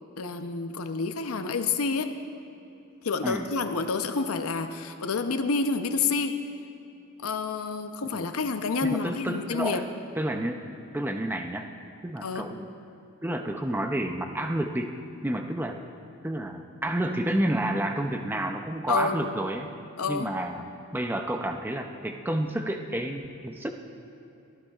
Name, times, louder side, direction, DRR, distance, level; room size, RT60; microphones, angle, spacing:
voice 1, 0.2-2.1 3.0-6.4 7.2-9.8 12.2-12.5 18.9-19.3 20.0-20.3, left 4 dB, 80° left, 8 dB, 0.7 m, -28 dB
voice 2, 8.8-9.8 10.2-10.6 10.9-11.7 12.0-12.7 13.2-14.9 15.2-15.8 16.2-19.7 20.1-20.7 20.9-23.7, right 1 dB, 10° right, 4 dB, 0.4 m, -30 dB
19.0 x 14.0 x 2.4 m, 2.9 s
head